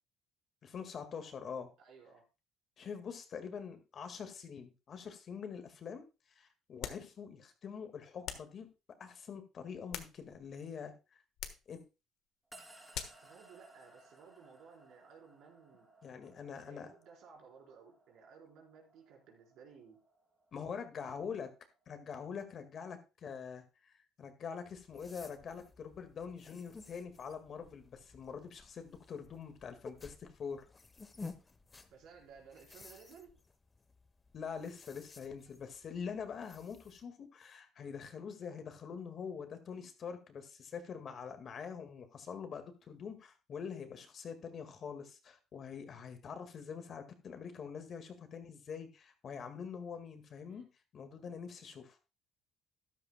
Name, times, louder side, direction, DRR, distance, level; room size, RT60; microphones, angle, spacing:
voice 1, 0.6-1.7 2.8-6.1 6.4-8.7 9.0-10.9 11.7-11.8 16.0-16.9 20.5-21.5 21.9-30.7 34.3-50.7 50.9-52.0, left 6 dB, 45° left, 8 dB, 1.8 m, -45 dB
voice 2, 1.8-2.2 13.2-15.9 16.6-20.0 31.9-33.4 50.4-50.7 51.2-51.4, right 6 dB, 75° right, 0 dB, 4.3 m, -57 dB
sound 1, 6.8-7.1 8.2-8.6 9.6-10.5 11.4-11.7 12.9-13.3, left 10 dB, 75° left, 1.3 m, -44 dB
sound 2, 12.5-22.9, right 2 dB, 10° right, 3.0 m, -62 dB
sound 3, 24.6-37.0, left 3 dB, 20° left, 1.0 m, -55 dB
13.5 x 11.5 x 2.2 m, 0.29 s
cardioid pair, 115°, 0 cm